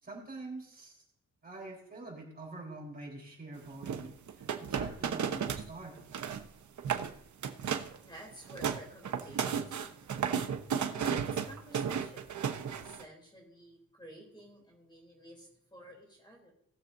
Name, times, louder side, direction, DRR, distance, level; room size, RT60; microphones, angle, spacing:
voice 1, 0.0-1.0 1.4-6.0, right 2 dB, 25° right, -2 dB, 4.0 m, -45 dB
sound 1, 3.8-5.7 6.0-6.5 6.8-7.1 7.4-8.0 8.3-13.0, right 7 dB, 60° right, 1.0 m, -33 dB
voice 2, 7.9-10.2 10.9-16.5, right 1 dB, 15° left, -1 dB, 3.2 m, -52 dB
19.5 x 7.0 x 2.6 m, 0.73 s
wide cardioid pair, 130°, 33 cm